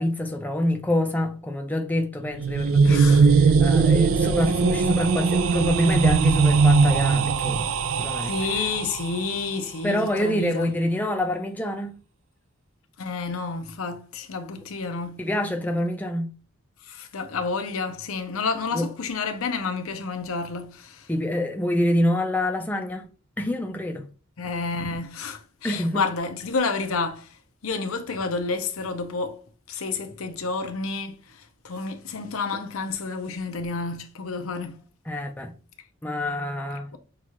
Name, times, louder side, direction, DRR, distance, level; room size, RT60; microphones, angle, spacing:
voice 1, 0.0-7.7 8.0-8.3 9.8-12.0 15.2-16.3 18.7-18.9 21.1-23.1 23.4-24.1 25.6-26.0 35.1-35.5 36.0-36.9, left 1 dB, 10° left, 0.4 m, -26 dB
sound 1, 2.3-9.3, right 5 dB, 75° right, 0.4 m, -20 dB
voice 2, 2.8-3.3 8.2-10.7 13.0-15.2 16.8-21.1 24.4-29.4 29.7-34.8, left 4 dB, 85° left, 0.6 m, -30 dB
5.9 x 2.4 x 2.9 m
head